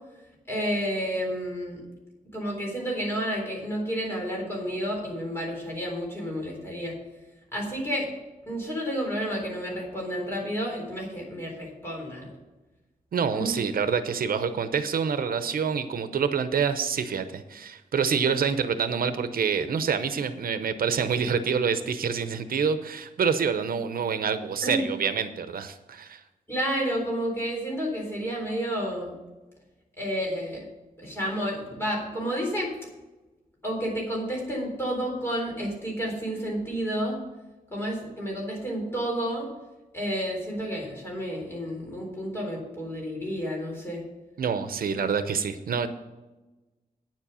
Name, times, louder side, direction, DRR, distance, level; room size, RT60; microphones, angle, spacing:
voice 1, 0.5-1.8 2.3-7.0 7.5-8.1 8.5-12.3 13.3-13.6 24.6-24.8 26.5-29.2 30.0-30.7 31.0-32.7 33.6-37.2 37.7-39.5 39.9-44.0, equal, 15° left, -2 dB, 3.8 m, -30 dB
voice 2, 13.1-26.2 44.4-45.9, right 6 dB, 85° right, 10 dB, 0.7 m, -27 dB
9.5 x 7.5 x 6.9 m, 1.1 s
wide cardioid pair, 170°, 15 cm